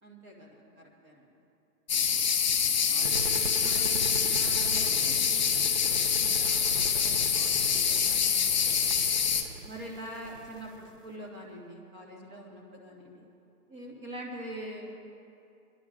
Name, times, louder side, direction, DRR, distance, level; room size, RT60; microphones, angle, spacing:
voice 1, 0.0-1.4 2.8-9.2 9.6-13.2 13.7-15.0, right 1 dB, 15° right, -2 dB, 1.3 m, -45 dB
sound 1, 1.9-9.4, left 7 dB, 30° left, 0.5 m, -26 dB
sound 2, 3.0-11.1, right 3 dB, 35° right, 0.7 m, -40 dB
26.5 x 11.0 x 2.5 m, 2.5 s
hypercardioid pair, 155°, 45 cm